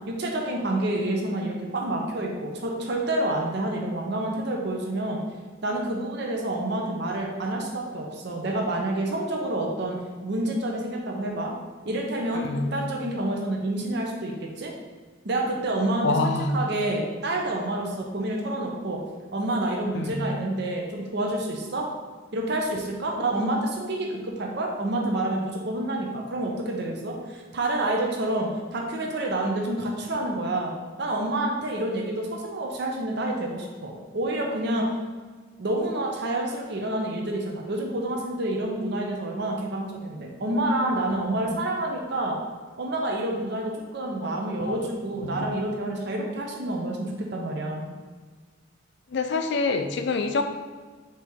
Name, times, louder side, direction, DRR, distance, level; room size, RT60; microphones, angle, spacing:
voice 1, 0.1-5.2 5.6-10.0 10.2-11.5 11.8-14.7 15.2-19.0 19.3-21.9 22.3-34.9 35.6-42.4 42.8-47.9, right 1 dB, 60° right, 0 dB, 0.6 m, -28 dB
voice 2, 12.3-12.7 16.0-16.6 19.9-20.3 41.3-41.6 44.6-44.8 45.2-45.4 49.1-50.4, left 3 dB, 60° left, 6 dB, 0.4 m, -26 dB
4.5 x 2.9 x 3.5 m, 1.5 s
head